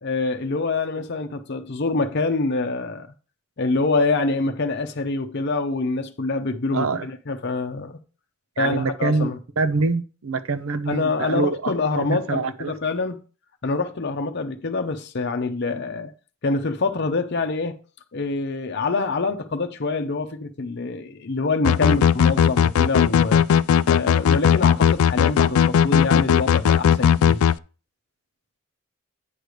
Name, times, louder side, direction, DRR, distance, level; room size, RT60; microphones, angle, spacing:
voice 1, 0.0-3.1 3.6-8.0 8.6-9.4 10.9-13.2 13.6-16.1 16.4-17.8 18.1-23.4 23.9-27.4, left 3 dB, 55° left, 0.7 m, -25 dB
voice 2, 6.7-7.1 8.6-12.7, right 3 dB, 80° right, 0.7 m, -25 dB
sound 1, 21.6-27.6, left 8 dB, 85° left, 0.3 m, -17 dB
9.3 x 3.3 x 6.5 m
head